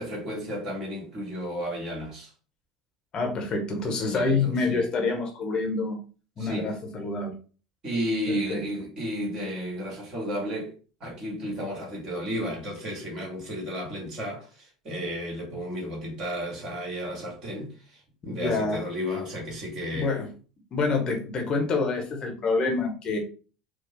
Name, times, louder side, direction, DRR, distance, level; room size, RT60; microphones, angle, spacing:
voice 1, 0.0-2.3 3.9-4.9 6.4-6.7 7.8-10.7 11.0-14.5 14.8-17.7 18.2-20.1, equal, 35° right, 2.3 m, -33 dB
voice 2, 3.1-6.0 6.4-7.4 8.3-8.6 18.2-18.9 19.8-20.3 20.7-23.2, left 3 dB, 35° left, 1.1 m, -27 dB
4.6 x 2.3 x 3.7 m
figure-of-eight pair, 70°, 2 cm